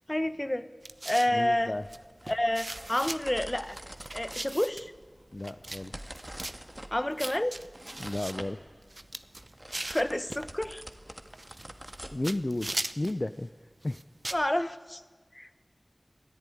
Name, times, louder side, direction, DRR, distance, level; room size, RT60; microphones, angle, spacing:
voice 1, 0.1-0.7 1.0-1.8 2.3-3.8 4.1-4.9 6.9-7.6 9.7-10.8 14.3-15.0 15.3-15.6, left 1 dB, 25° left, 13 dB, 1.0 m, -29 dB
sound 1, 0.8-1.4 1.9-2.0 2.3-3.2 3.7-4.9 5.4-5.8 6.1-6.6 7.2-8.3 8.8-10.5 11.3-12.0 12.2-13.2 13.8-14.5, right 2 dB, 50° right, 0.8 m, -38 dB
voice 2, 1.3-1.8 5.3-6.0 8.0-8.6 12.1-13.5 13.8-14.0, left 1 dB, 45° left, 11 dB, 0.6 m, -33 dB
sound 2, 1.6-12.8, right 1 dB, 25° right, 1.8 m, -47 dB
22.0 x 14.0 x 9.8 m, 1.4 s
wide cardioid pair, 40°, 0 cm